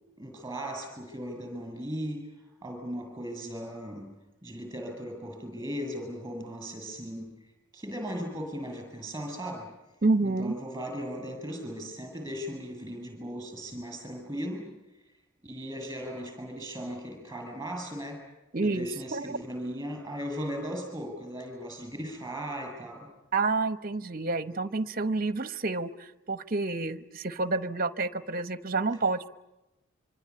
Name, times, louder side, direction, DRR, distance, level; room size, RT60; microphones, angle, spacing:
voice 1, 0.2-2.2 2.6-4.1 4.4-7.3 7.7-9.7 10.2-14.7 15.4-18.2 18.6-23.1, equal, 15° right, 3 dB, 7.6 m, -37 dB
voice 2, 10.0-10.5 18.5-19.4 23.3-29.3, right 3 dB, 40° right, 14 dB, 0.9 m, -29 dB
25.5 x 25.0 x 8.6 m, 0.99 s
head